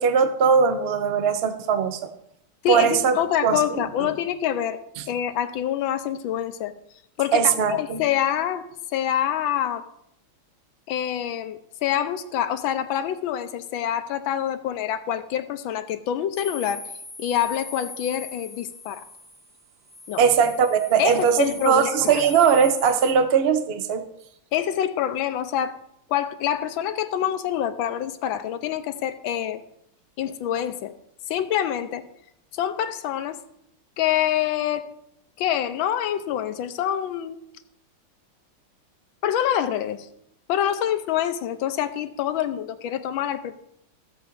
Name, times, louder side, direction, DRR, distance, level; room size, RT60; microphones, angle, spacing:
voice 1, 0.0-2.0 2.7-3.1 3.4-4.1 5.0-5.1 7.3-8.0 20.2-21.4 21.6-24.0, right 6 dB, 90° right, 8 dB, 0.5 m, -20 dB
voice 2, 2.6-4.8 5.1-6.7 7.2-8.7 8.9-9.8 10.9-16.8 17.2-19.0 20.1-20.2 21.0-22.2 24.5-25.7 26.1-29.6 30.2-30.9 31.3-32.0 32.5-33.4 34.0-34.9 35.4-37.4 39.2-40.1 40.5-43.5, left 10 dB, 80° left, 10 dB, 1.4 m, -26 dB
sound 1, 16.3-23.1, left 2 dB, 10° left, 0.9 m, -40 dB
14.5 x 7.9 x 2.6 m, 0.75 s
omnidirectional pair, 2.2 m